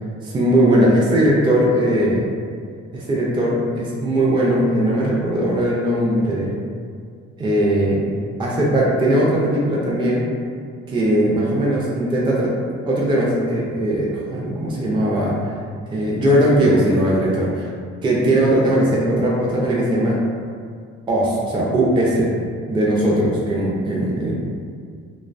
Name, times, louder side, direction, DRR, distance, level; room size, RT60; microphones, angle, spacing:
voice 1, 0.2-2.3 2.9-6.5 7.4-8.0 8.4-10.3 10.9-12.5 12.9-15.5 15.9-17.7 18.0-20.2 21.1-22.3 22.7-24.3, right 1 dB, 15° right, -5 dB, 0.4 m, -19 dB
2.5 x 2.1 x 2.4 m, 2.1 s
cardioid pair, 90°, 30 cm